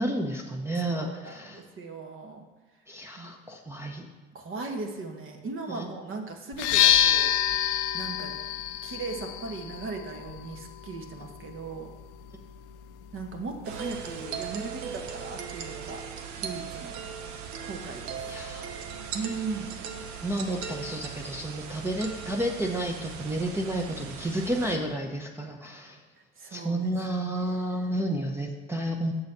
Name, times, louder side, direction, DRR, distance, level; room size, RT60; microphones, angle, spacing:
voice 1, 0.0-1.6 2.9-4.1 5.7-5.8 18.3-18.7 20.2-26.0 26.5-29.1, right 1 dB, 10° right, 1 dB, 0.7 m, -31 dB
voice 2, 0.9-2.4 3.2-3.3 4.3-7.3 7.9-8.4 8.8-11.9 13.1-16.0 16.4-16.9 17.6-18.2 19.1-19.7 26.2-28.0, right 3 dB, 40° right, 4 dB, 1.2 m, -38 dB
sound 1, 6.5-14.3, left 11 dB, 70° left, 0.5 m, -28 dB
sound 2, 13.6-24.8, right 7 dB, 60° right, 0.9 m, -38 dB
7.1 x 4.0 x 6.6 m, 1.2 s
supercardioid pair, 85°, 32 cm